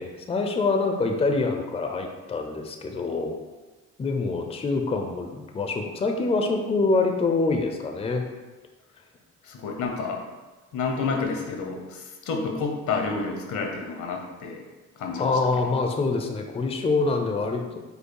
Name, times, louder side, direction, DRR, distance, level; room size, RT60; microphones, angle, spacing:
voice 1, 0.0-3.3 4.0-8.3 15.2-17.8, left 3 dB, 20° left, 4 dB, 0.5 m, -25 dB
voice 2, 9.4-10.2 10.7-14.6 15.0-15.3 15.6-15.7, left 4 dB, 75° left, 2 dB, 0.9 m, -29 dB
5.4 x 2.0 x 4.6 m, 1.2 s
cardioid pair, 90°, 30 cm